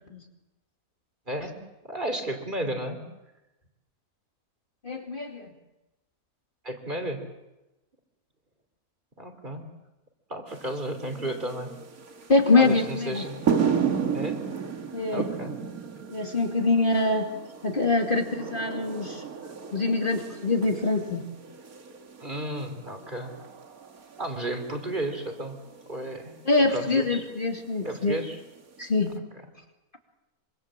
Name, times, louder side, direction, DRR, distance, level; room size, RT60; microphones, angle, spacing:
voice 1, 1.3-1.6 1.8-3.0 6.6-7.2 9.2-9.6 10.3-11.7 12.5-13.4 14.1-14.4 15.1-15.6 22.2-23.3 24.2-25.5 25.9-27.2 27.8-28.4, right 1 dB, 35° right, 6 dB, 3.2 m, -33 dB
voice 2, 4.8-5.5 12.3-13.2 14.9-15.3 16.1-17.3 17.6-19.2 19.7-21.2 26.5-28.2 28.8-29.1, left 3 dB, 35° left, 2 dB, 2.7 m, -24 dB
sound 1, 10.5-29.1, right 7 dB, 80° right, 2.2 m, -34 dB
26.0 x 24.5 x 7.6 m, 1.0 s
omnidirectional pair, 1.5 m